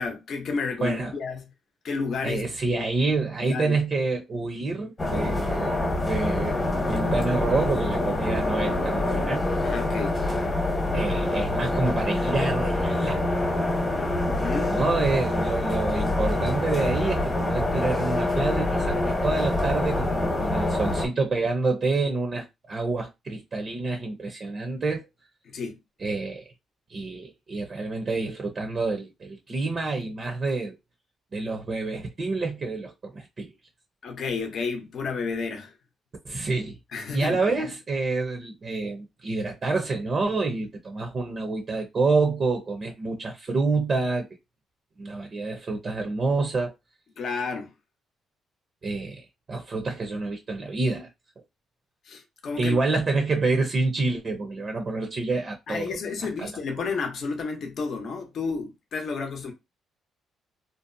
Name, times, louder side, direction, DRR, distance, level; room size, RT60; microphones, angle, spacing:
voice 1, 0.0-1.4 1.8-2.9 3.4-3.8 9.6-10.2 14.3-14.8 25.5-25.8 34.0-35.7 36.9-37.7 47.2-47.7 52.1-52.8 55.7-59.5, left 4 dB, 60° left, 0.6 m, -31 dB
voice 2, 0.8-1.1 2.2-5.8 6.0-9.4 10.9-13.2 14.7-25.1 26.0-26.4 26.9-30.8 31.3-33.5 36.2-36.8 37.1-44.3 45.0-46.7 48.8-51.1 52.6-56.5, right 3 dB, 40° right, 0.5 m, -28 dB
sound 1, 5.0-21.1, left 2 dB, 25° left, 0.9 m, -25 dB
2.6 x 2.0 x 2.5 m
cardioid pair, 90°, 0 cm